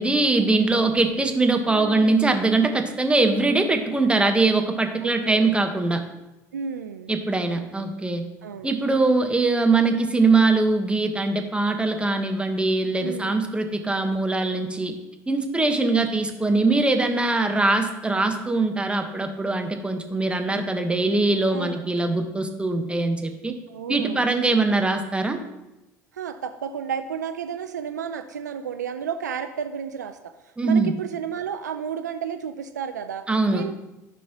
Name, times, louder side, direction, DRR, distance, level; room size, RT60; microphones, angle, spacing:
voice 1, 0.0-6.0 7.1-8.2 8.6-14.9 15.3-23.5 23.9-25.4 30.6-30.9 33.3-33.6, right 3 dB, 10° right, 5 dB, 1.2 m, -22 dB
voice 2, 1.7-2.4 5.0-5.6 6.5-7.1 7.8-7.9 8.4-8.8 13.0-13.4 15.7-16.1 21.5-21.9 23.7-24.3 26.1-33.8, right 7 dB, 90° right, 9 dB, 0.4 m, -32 dB
13.5 x 5.4 x 2.9 m, 0.97 s
hypercardioid pair, 70°, 9 cm